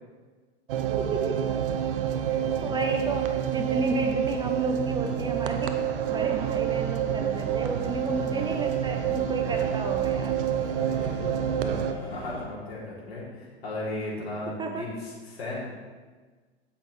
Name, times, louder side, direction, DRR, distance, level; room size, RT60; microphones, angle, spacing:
sound 1, 0.7-11.9, right 10 dB, 55° right, 0.7 m, -28 dB
voice 1, 1.0-1.5 2.2-10.4 14.6-14.9, right 3 dB, 15° right, 4 dB, 0.7 m, -32 dB
voice 2, 2.1-2.7 10.3-15.6, left 2 dB, 70° left, -7 dB, 3.0 m, -37 dB
sound 2, 4.8-12.5, left 2 dB, 15° left, 3.2 m, -41 dB
15.5 x 5.8 x 3.2 m, 1.4 s
figure-of-eight pair, 90°, 32 cm